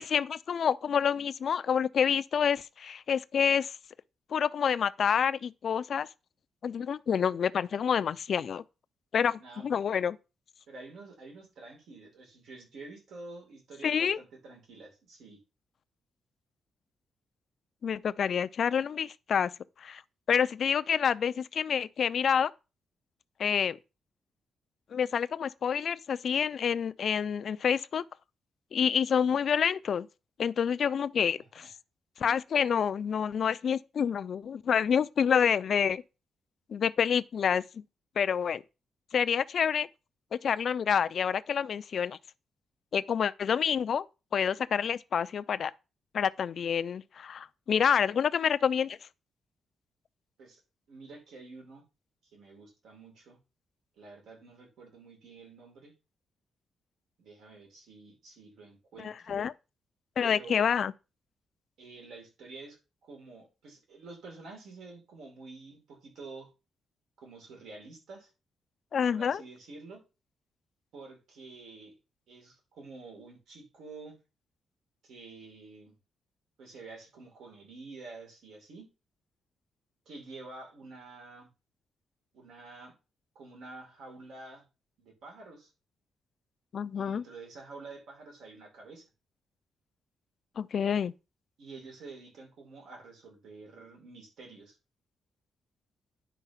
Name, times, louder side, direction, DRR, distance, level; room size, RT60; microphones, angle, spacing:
voice 1, 0.0-3.8 4.3-6.1 6.6-8.6 9.1-10.2 13.8-14.2 17.8-19.5 19.8-20.0 20.3-22.5 23.4-23.8 24.9-28.0 28.7-30.1 30.4-31.7 32.2-36.0 36.7-37.8 38.2-38.6 39.1-39.9 40.3-42.2 42.9-44.1 44.3-45.7 46.1-49.0 59.0-59.5 60.2-60.9 68.9-69.4 86.7-87.2 90.6-91.1, left 7 dB, 45° left, 0.5 m, -28 dB
voice 2, 9.4-9.8 10.7-15.4 31.4-31.7 50.4-50.6 50.9-51.8 52.3-53.4 54.0-55.9 57.2-59.4 60.2-60.6 61.8-66.5 67.2-68.3 69.1-70.0 70.9-71.9 72.3-74.2 75.0-76.0 76.6-78.9 80.0-81.5 82.3-82.9 83.3-84.6 85.0-85.7 86.9-89.1 91.6-94.8, right 3 dB, 75° right, 4.7 m, -48 dB
10.0 x 4.6 x 5.7 m
wide cardioid pair, 165°, 0 cm